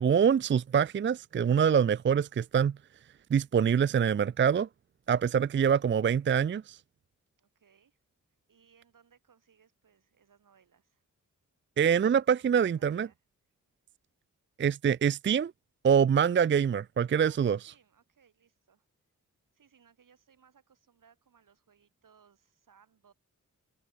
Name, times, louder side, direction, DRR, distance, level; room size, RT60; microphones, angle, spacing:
voice 1, 0.0-2.8 3.3-4.7 5.1-6.8 11.8-13.1 14.6-15.5 15.8-17.6, right 7 dB, 40° right, 0.4 m, -25 dB
voice 2, 7.4-8.0 8.5-11.0 12.3-13.2 17.2-18.9 19.5-23.1, right 7 dB, 80° right, 8.0 m, -64 dB
wide cardioid pair, 85°, 32 cm